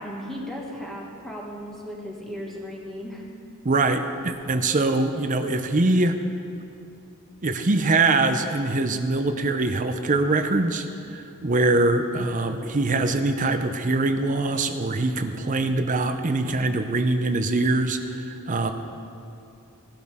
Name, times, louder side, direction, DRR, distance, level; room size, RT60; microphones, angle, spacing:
voice 1, 0.0-3.2, equal, ahead, -3 dB, 1.8 m, -36 dB
voice 2, 3.6-6.2 7.4-18.7, right 2 dB, 35° right, 7 dB, 0.6 m, -23 dB
17.0 x 12.0 x 3.6 m, 2.7 s
head